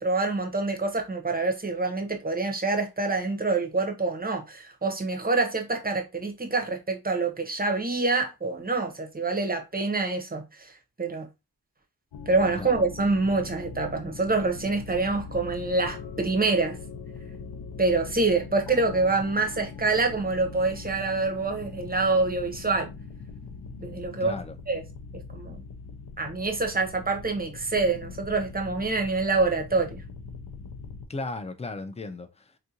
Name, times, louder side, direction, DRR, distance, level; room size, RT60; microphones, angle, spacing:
voice 1, 0.0-10.7 11.0-11.3 12.3-16.8 17.8-22.9 23.8-24.4 24.7-24.8 25.3-25.6 26.2-30.0, right 3 dB, 25° right, 0.7 m, -26 dB
sound 1, 12.1-31.1, left 4 dB, 90° left, 0.5 m, -41 dB
voice 2, 24.2-24.6 31.1-32.5, left 3 dB, 20° left, 0.4 m, -36 dB
3.6 x 2.5 x 2.7 m
wide cardioid pair, 85°, 38 cm